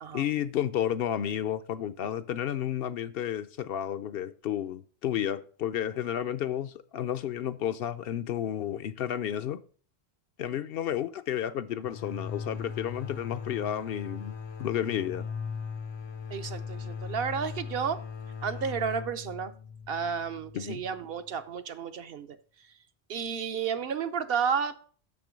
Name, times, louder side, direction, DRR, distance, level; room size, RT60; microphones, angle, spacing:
voice 1, 0.1-9.6 10.4-14.3 14.6-15.3 20.5-20.8, left 10 dB, 70° left, 0.7 m, -31 dB
sound 1, 11.8-21.3, left 6 dB, 40° left, 0.4 m, -39 dB
voice 2, 16.3-18.0 18.4-19.5 19.9-22.4 23.1-24.8, right 6 dB, 65° right, 0.9 m, -32 dB
6.8 x 6.0 x 5.0 m
omnidirectional pair, 1.1 m